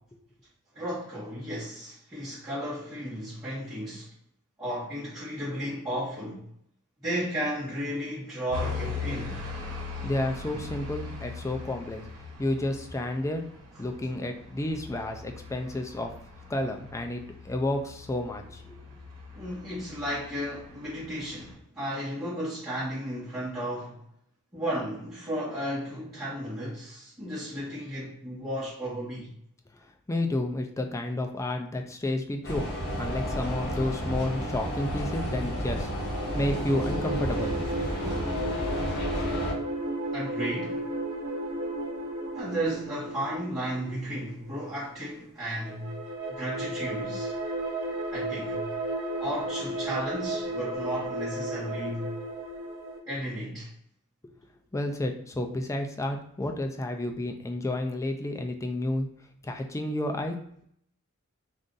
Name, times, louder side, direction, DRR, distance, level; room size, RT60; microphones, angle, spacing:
voice 1, 0.7-4.1 4.6-6.4 7.0-9.4 19.3-24.0 24.5-29.3 38.8-38.9 40.1-40.8 42.3-45.9 46.3-47.3 48.1-48.7 49.2-52.1 53.1-53.7, equal, 15° right, 1.2 m, -34 dB
sound 1, 8.5-21.5, left 4 dB, 80° right, 1.1 m, -40 dB
voice 2, 10.0-12.1 12.4-13.5 13.8-16.1 16.5-18.8 30.1-32.7 33.0-35.9 36.3-37.6 54.2-54.3 54.7-59.1 59.4-60.6, left 1 dB, 15° left, 0.3 m, -31 dB
sound 2, 32.4-39.5, equal, 50° left, 0.9 m, -32 dB
sound 3, 36.0-44.6 45.6-53.0, right 1 dB, 60° right, 0.9 m, -34 dB
2.5 x 2.5 x 3.8 m
head